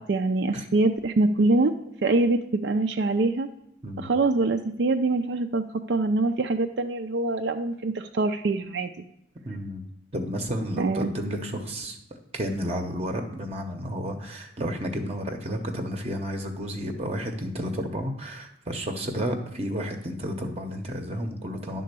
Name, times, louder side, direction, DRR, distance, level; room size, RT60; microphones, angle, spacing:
voice 1, 0.0-1.7 2.0-3.5 4.0-8.9 10.8-11.1, right 2 dB, 65° right, 5 dB, 0.4 m, -24 dB
voice 2, 9.4-9.8 10.1-12.0 12.3-21.8, equal, 35° right, 4 dB, 0.8 m, -31 dB
10.5 x 3.8 x 6.7 m, 0.79 s
head